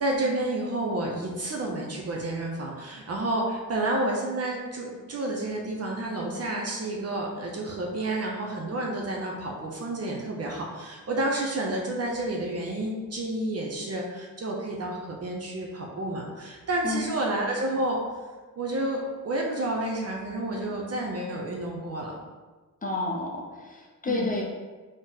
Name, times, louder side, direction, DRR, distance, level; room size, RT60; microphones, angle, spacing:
voice 1, 0.0-18.0 18.6-22.1 24.0-24.3, right 1 dB, 45° right, -1 dB, 0.7 m, -30 dB
voice 2, 22.8-24.4, left 2 dB, 25° left, -3 dB, 0.6 m, -30 dB
4.2 x 3.1 x 4.0 m, 1.3 s
wide cardioid pair, 145°, 34 cm